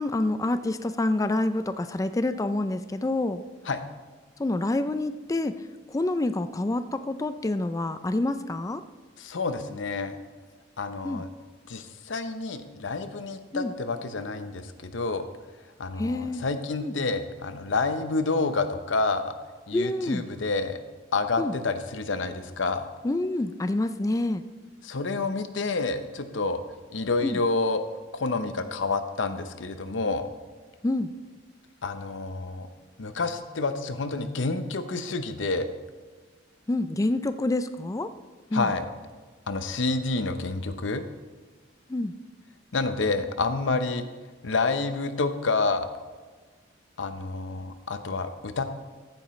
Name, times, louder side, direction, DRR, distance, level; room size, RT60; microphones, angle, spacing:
voice 1, 0.0-3.4 4.4-5.5 5.9-8.8 11.0-11.2 13.5-13.7 16.0-16.4 16.8-16.9 19.7-20.2 21.4-21.5 23.0-24.4 27.2-27.4 30.8-31.1 36.7-38.1 38.5-38.7 41.9-42.1, left 2 dB, 20° left, 11 dB, 0.4 m, -27 dB
voice 2, 9.2-10.2 10.8-11.3 11.7-15.3 15.8-19.3 19.7-20.8 21.1-22.9 24.8-26.6 26.9-27.8 28.1-30.3 31.8-32.7 33.0-35.7 38.5-38.9 39.5-41.0 42.7-44.1 44.4-45.9 47.0-48.6, left 3 dB, 85° left, 9 dB, 0.8 m, -28 dB
14.5 x 8.9 x 3.2 m, 1.4 s
head